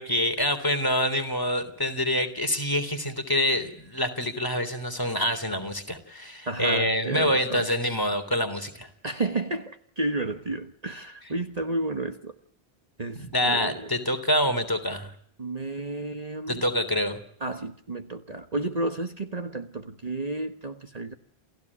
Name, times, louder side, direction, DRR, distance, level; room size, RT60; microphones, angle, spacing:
voice 1, 0.0-8.9 13.2-15.1 16.5-17.2, equal, 20° left, 3.4 m, -26 dB
voice 2, 6.5-7.6 9.0-12.3 13.0-13.8 15.4-16.6 17.4-21.1, right 2 dB, 40° right, 1.4 m, -31 dB
29.0 x 16.0 x 9.8 m
omnidirectional pair, 1.0 m